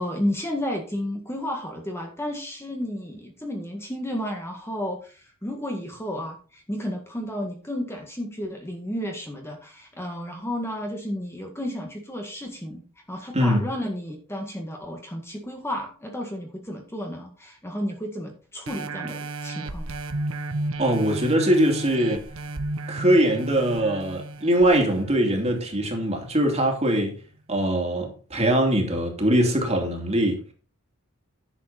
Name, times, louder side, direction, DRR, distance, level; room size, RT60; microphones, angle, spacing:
voice 1, 0.0-12.8 13.1-19.9, left 1 dB, 10° left, 1.8 m, -32 dB
voice 2, 13.3-13.6 20.8-22.2 22.9-27.1 27.5-30.4, right 1 dB, 30° right, 2.8 m, -22 dB
sound 1, 18.7-25.8 26.4-26.5, right 2 dB, 70° right, 1.3 m, -33 dB
10.5 x 7.5 x 4.2 m
head